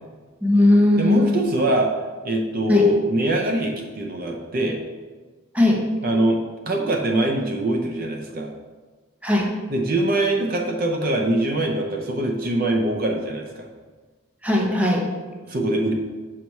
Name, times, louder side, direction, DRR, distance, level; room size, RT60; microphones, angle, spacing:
voice 1, 0.4-1.4 2.7-2.9 5.5-5.8 9.2-9.5 14.4-15.1, left 1 dB, 5° right, -1 dB, 0.7 m, -18 dB
voice 2, 1.0-1.9 2.2-4.8 6.0-8.5 9.7-13.7 15.4-15.9, right 1 dB, 40° right, 2 dB, 0.6 m, -23 dB
5.7 x 4.7 x 5.4 m, 1.4 s
head